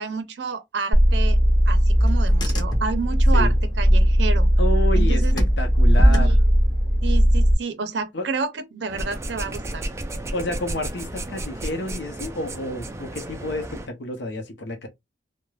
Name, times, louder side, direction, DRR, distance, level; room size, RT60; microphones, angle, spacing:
voice 1, 0.0-1.4 1.7-4.5 4.9-5.3 6.0-6.4 7.0-9.9, right 4 dB, 65° right, 0.5 m, -30 dB
Car / Engine, 0.9-7.5, equal, 20° left, 0.6 m, -17 dB
voice 2, 4.6-6.4 8.1-8.3 10.3-14.9, left 1 dB, 65° left, 0.6 m, -30 dB
sound 1, 8.9-13.9, right 1 dB, 15° right, 0.3 m, -33 dB
2.3 x 2.1 x 3.1 m
head